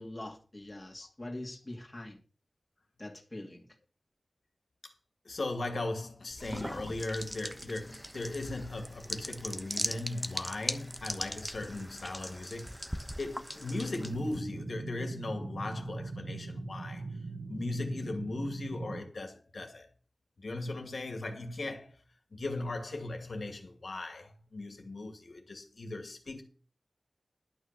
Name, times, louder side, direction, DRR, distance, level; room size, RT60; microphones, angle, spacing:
voice 1, 0.0-2.2 3.0-3.7, left 1 dB, 25° left, 2.5 m, -43 dB
voice 2, 5.2-12.8 13.2-17.1 17.5-19.9 20.4-22.0 22.3-26.4, left 2 dB, 70° left, 2.2 m, -38 dB
sound 1, 6.3-14.4, equal, 5° right, 1.1 m, -40 dB
sound 2, 13.9-19.0, right 2 dB, 85° right, 1.0 m, -41 dB
11.5 x 6.2 x 6.8 m
wide cardioid pair, 70°, 0 cm